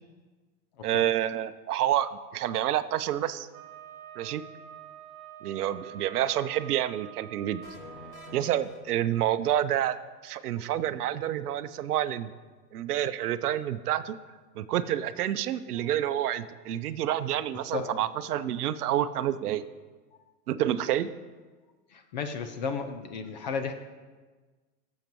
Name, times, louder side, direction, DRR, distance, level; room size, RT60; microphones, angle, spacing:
voice 1, 0.8-3.5 4.2-4.4 5.4-7.6 8.3-10.0 10.2-12.3 12.7-14.2 14.6-19.6 20.5-21.1, right 11 dB, 65° right, 13 dB, 0.7 m, -28 dB
Wind instrument woodwind instrument, 3.5-8.7, right 10 dB, 40° right, 1.9 m, -47 dB
sound 1, 7.6-9.6, left 4 dB, 75° left, 2.0 m, -47 dB
voice 2, 17.7-18.0 21.9-23.7, left 5 dB, 30° left, 8 dB, 0.4 m, -34 dB
16.5 x 7.4 x 3.1 m, 1.4 s
hypercardioid pair, 135°, 49 cm